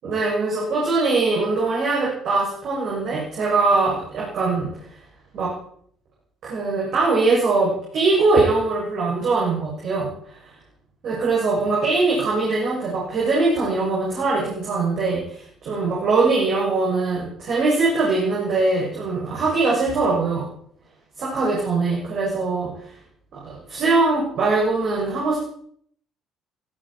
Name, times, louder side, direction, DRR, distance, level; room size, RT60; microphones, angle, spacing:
voice 1, 0.0-4.7 5.3-5.5 6.4-10.1 11.0-20.5 21.2-22.7 23.3-25.4, right 3 dB, 55° right, -5 dB, 7.0 m, -22 dB
18.5 x 15.5 x 4.4 m, 0.62 s
hypercardioid pair, 50°, 0 cm